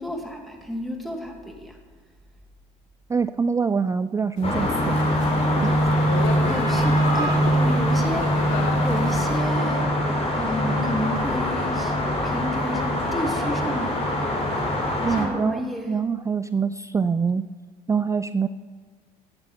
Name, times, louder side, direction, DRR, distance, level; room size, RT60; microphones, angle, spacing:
voice 1, 0.0-1.8 6.5-8.3 8.8-9.9 10.3-14.3 15.2-16.0, equal, ahead, 1 dB, 2.5 m, -31 dB
voice 2, 3.1-5.1 5.6-5.8 15.0-15.6 15.9-17.5 17.9-18.5, right 5 dB, 15° right, 12 dB, 0.3 m, -24 dB
sound 1, 4.4-9.5, left 7 dB, 65° left, 1.2 m, -34 dB
sound 2, 4.4-15.3, equal, 30° left, 4.0 m, -23 dB
15.5 x 8.1 x 5.7 m, 1.5 s
hypercardioid pair, 65°, 20 cm